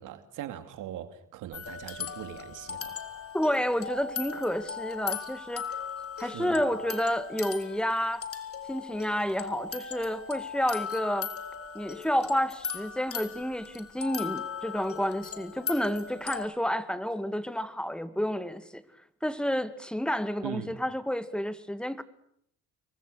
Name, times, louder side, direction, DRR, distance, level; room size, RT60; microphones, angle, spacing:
voice 1, 0.0-3.0 6.2-6.6 20.4-20.7, right 11 dB, 90° right, 2.4 m, -40 dB
sound 1, 1.5-16.5, left 6 dB, 50° left, 3.8 m, -38 dB
voice 2, 3.3-5.7 6.2-8.3 8.7-11.3 11.7-18.8 19.2-22.0, equal, 5° left, 2.1 m, -30 dB
29.5 x 23.5 x 6.5 m
cardioid pair, 90°, 30 cm